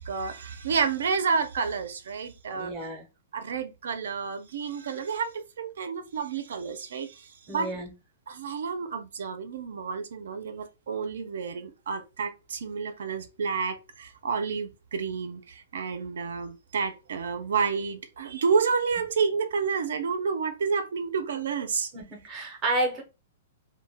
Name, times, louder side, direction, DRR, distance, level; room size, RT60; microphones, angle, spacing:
voice 1, 0.0-2.7 3.3-7.7 8.3-21.9, right 5 dB, 75° right, 0.4 m, -30 dB
voice 2, 2.5-3.1 7.5-7.9 21.9-23.0, right 1 dB, 15° right, 0.5 m, -30 dB
2.1 x 2.1 x 3.2 m
hypercardioid pair, 180°, 0 cm